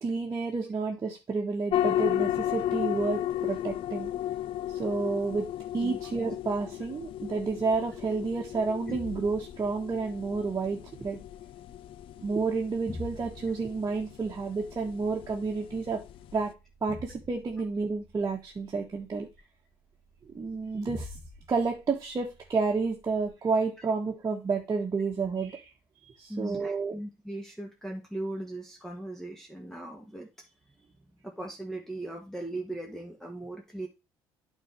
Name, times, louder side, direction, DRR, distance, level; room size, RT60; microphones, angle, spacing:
voice 1, 0.0-4.1 4.7-5.5 5.7-11.2 12.2-16.0 16.3-16.5 16.8-19.3 20.3-21.1 21.5-25.7 26.2-27.0, right 4 dB, 35° right, 0 dB, 1.4 m, -30 dB
sound 1, 1.7-16.5, left 12 dB, 60° left, 0.4 m, -34 dB
sound 2, 8.4-23.3, left 2 dB, 35° left, 2.5 m, -49 dB
voice 2, 26.3-30.5 31.2-33.9, right 1 dB, 5° left, 0 dB, 1.7 m, -38 dB
9.0 x 4.0 x 4.6 m, 0.27 s
supercardioid pair, 70°, 10 cm